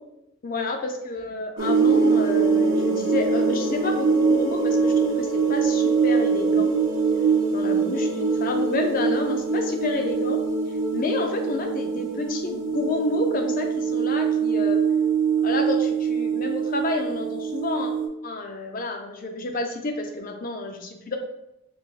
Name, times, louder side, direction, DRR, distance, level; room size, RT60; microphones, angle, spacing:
voice 1, 0.4-6.7 7.5-10.4 10.9-14.8 15.4-17.9 18.2-21.2, left 2 dB, 40° left, 4 dB, 0.5 m, -29 dB
sound 1, 1.6-18.1, right 5 dB, 60° right, 0.6 m, -23 dB
4.5 x 3.3 x 2.4 m, 0.87 s
head